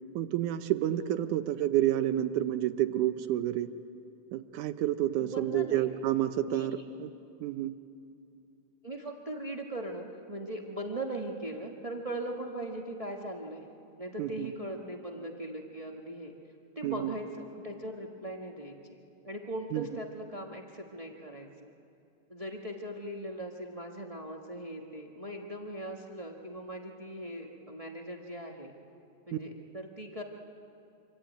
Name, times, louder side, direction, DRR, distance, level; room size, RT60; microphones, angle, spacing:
voice 1, 0.2-3.7 4.3-7.1 7.4-7.7 14.2-14.5 16.8-17.1 19.7-19.9 29.3-29.4, right 12 dB, 85° right, 9 dB, 2.3 m, -29 dB
voice 2, 5.2-5.9 6.5-6.8 8.8-13.6 14.0-16.3 16.7-19.0 19.2-21.7 22.3-28.7 29.3-30.2, right 1 dB, 60° right, 1 dB, 0.3 m, -39 dB
26.5 x 24.5 x 9.2 m, 2.6 s
omnidirectional pair, 3.5 m